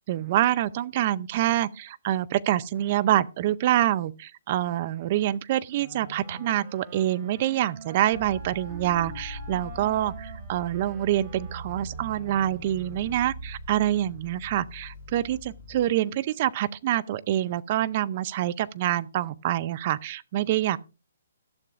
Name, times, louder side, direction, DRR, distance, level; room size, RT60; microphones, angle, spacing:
voice 1, 0.1-20.8, right 13 dB, 35° right, 0.5 m, -26 dB
Wind instrument woodwind instrument, 5.7-13.2, right 3 dB, 20° right, 3.0 m, -46 dB
sound 1, 8.1-15.9, equal, 30° left, 6.5 m, -42 dB
13.0 x 11.5 x 2.5 m
hypercardioid pair, 160°, 0 cm